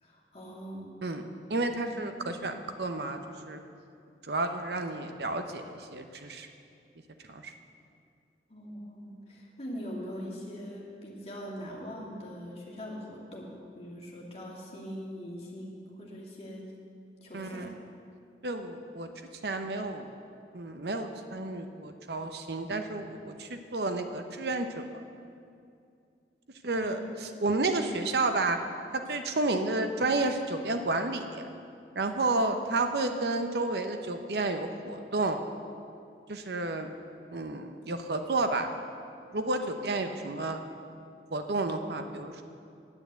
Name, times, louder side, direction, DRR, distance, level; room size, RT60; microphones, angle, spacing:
voice 1, 0.0-1.0 1.8-2.4 8.5-16.7 17.2-17.7 26.7-27.0, equal, 35° left, -4 dB, 2.3 m, -42 dB
voice 2, 1.5-3.2 3.5-3.6 4.2-6.5 7.3-7.5 17.3-17.7 18.4-19.1 19.4-20.1 20.5-24.9 26.6-28.6 28.9-31.5 31.9-35.4 36.3-36.9 37.3-38.7 39.3-40.6 41.3-42.4, right 2 dB, 65° right, 7 dB, 0.8 m, -31 dB
9.8 x 9.1 x 8.1 m, 2.4 s
head